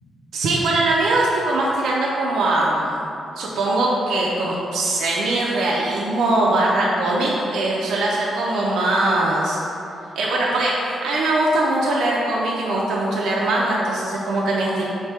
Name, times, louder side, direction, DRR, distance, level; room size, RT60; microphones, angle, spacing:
voice 1, 0.3-3.0 3.4-9.6 10.2-14.9, right 2 dB, 85° right, -4 dB, 0.5 m, -21 dB
4.3 x 3.2 x 3.4 m, 2.7 s
cardioid pair, 105°, 0 cm